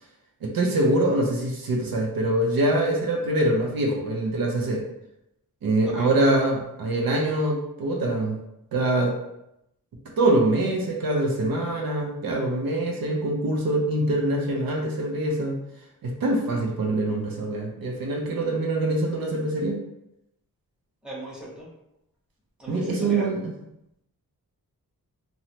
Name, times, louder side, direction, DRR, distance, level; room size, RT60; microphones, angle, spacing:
voice 1, 0.4-4.8 5.6-8.4 8.7-9.2 10.2-15.6 16.0-19.8 22.7-23.4, right 1 dB, 80° right, 0 dB, 0.6 m, -24 dB
voice 2, 21.0-21.7 22.6-23.3, right 1 dB, 5° right, -7 dB, 0.9 m, -38 dB
3.0 x 2.0 x 2.8 m, 0.85 s
wide cardioid pair, 115°, 35 cm